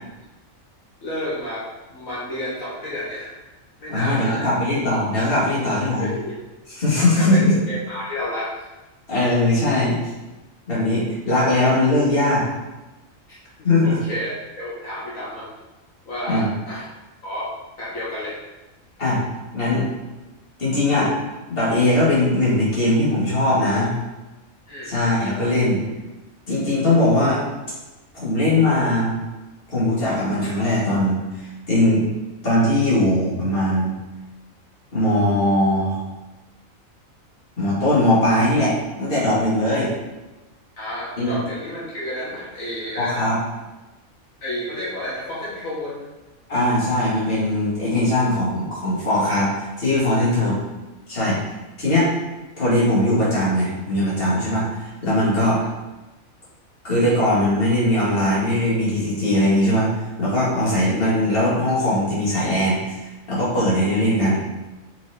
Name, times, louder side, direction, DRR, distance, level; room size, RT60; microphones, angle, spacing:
voice 1, 1.0-1.6 1.9-3.3 3.8-4.5 6.0-6.4 7.0-8.6 11.5-11.6 13.3-13.4 13.8-15.5 16.1-16.9 17.2-17.5 17.8-18.4 24.7-25.0 40.8-43.3 44.4-46.1 50.4-50.5, left 1 dB, 75° left, -8 dB, 2.1 m, -31 dB
voice 2, 3.9-6.1 6.8-7.5 9.1-10.0 10.7-12.5 13.6-14.0 16.3-16.5 19.0-19.2 19.5-19.9 20.6-21.1 21.5-23.9 24.8-25.8 26.5-27.4 28.1-29.1 29.7-32.1 32.4-33.9 34.9-36.0 37.6-39.9 41.2-41.3 43.0-43.4 46.5-50.6 51.1-51.4 51.8-52.1 52.6-55.6 56.8-59.9 60.2-62.8 63.3-64.7, left 1 dB, 45° left, -7 dB, 2.5 m, -20 dB
5.7 x 4.8 x 4.4 m, 1.1 s
omnidirectional pair, 1.4 m